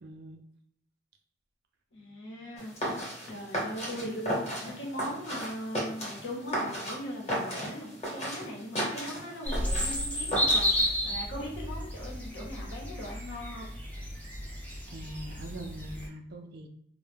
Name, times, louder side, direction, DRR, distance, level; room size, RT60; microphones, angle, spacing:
voice 1, 0.0-0.4 14.9-16.7, right 1 dB, 60° right, 4 dB, 0.4 m, -42 dB
voice 2, 1.9-2.7 3.0-13.7, equal, 80° left, -2 dB, 0.8 m, -40 dB
sound 1, 2.6-11.0, equal, 35° left, 0.9 m, -35 dB
sound 2, 9.4-16.1, equal, 10° left, 0.4 m, -32 dB
2.2 x 2.0 x 3.2 m, 0.69 s
head